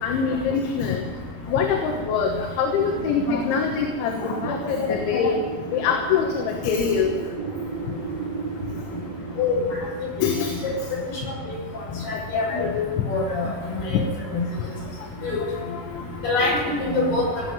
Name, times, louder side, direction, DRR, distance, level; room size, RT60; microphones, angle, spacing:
voice 1, 0.0-1.0 1.5-7.1 10.2-10.6 12.1-12.7 15.7-15.8 16.4-16.5 17.3-17.4, left 6 dB, 75° left, 2 dB, 3.6 m, -24 dB
Wind, 2.7-11.4, right 5 dB, 80° right, 1.5 m, -35 dB
voice 2, 12.1-12.8 13.1-14.0 15.2-15.4 16.2-17.2, left 3 dB, 55° left, -4 dB, 7.9 m, -24 dB
18.5 x 8.3 x 9.5 m, 1.5 s
omnidirectional pair, 5.6 m